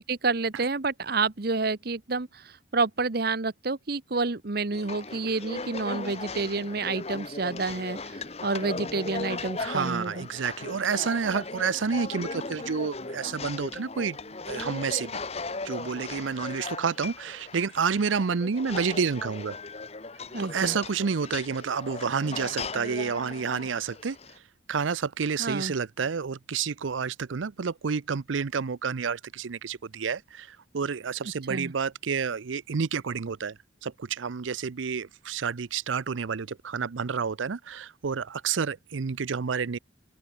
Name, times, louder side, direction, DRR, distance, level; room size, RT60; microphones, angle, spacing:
voice 1, 0.0-10.3 20.3-20.8 25.4-25.7 31.5-31.7, right 3 dB, 55° right, 1.0 m, -29 dB
sound 1, 4.7-24.4, left 3 dB, 35° left, 1.3 m, -38 dB
voice 2, 9.6-14.2 14.5-15.2 15.6-19.6 20.4-39.8, right 6 dB, 85° right, 0.6 m, -29 dB
open air
head